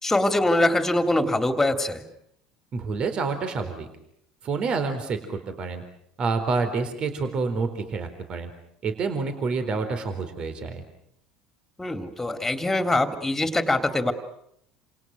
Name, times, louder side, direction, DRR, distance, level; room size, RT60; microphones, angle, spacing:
voice 1, 0.0-2.0 11.8-14.1, left 2 dB, 10° left, 8 dB, 3.4 m, -23 dB
voice 2, 2.7-3.9 4.4-5.8 6.2-8.5 8.8-10.8, right 4 dB, 40° right, 9 dB, 4.2 m, -28 dB
30.0 x 28.0 x 6.6 m, 0.73 s
figure-of-eight pair, 65°, 3 cm